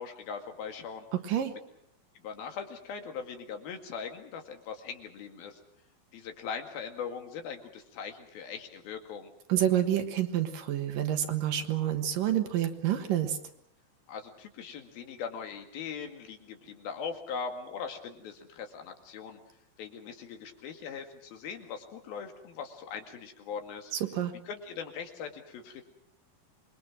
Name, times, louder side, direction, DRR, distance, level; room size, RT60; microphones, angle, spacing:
voice 1, 0.0-1.1 2.2-5.6 6.1-9.3 14.1-19.4 19.8-24.1 24.4-25.8, left 6 dB, 80° left, 5 dB, 3.9 m, -40 dB
voice 2, 1.1-1.5 9.5-13.4 23.9-24.3, right 11 dB, 70° right, 7 dB, 3.0 m, -28 dB
27.0 x 22.0 x 6.1 m, 0.69 s
omnidirectional pair, 4.2 m